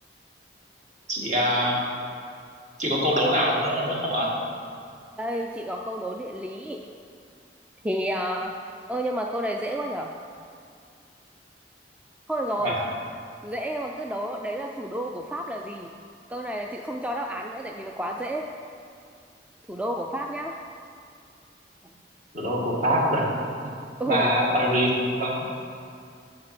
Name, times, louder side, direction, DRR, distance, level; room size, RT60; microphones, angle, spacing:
voice 1, 1.1-1.8 2.8-4.3 12.6-12.8 22.3-23.3 24.1-24.9 25.2-25.5, equal, 45° right, -3 dB, 1.8 m, -23 dB
voice 2, 5.2-6.8 7.8-8.6 8.9-10.1 12.3-12.8 13.4-15.9 16.3-18.5 19.7-20.6 24.0-24.3, equal, 10° right, 1 dB, 0.3 m, -30 dB
7.7 x 6.7 x 5.9 m, 2.3 s
head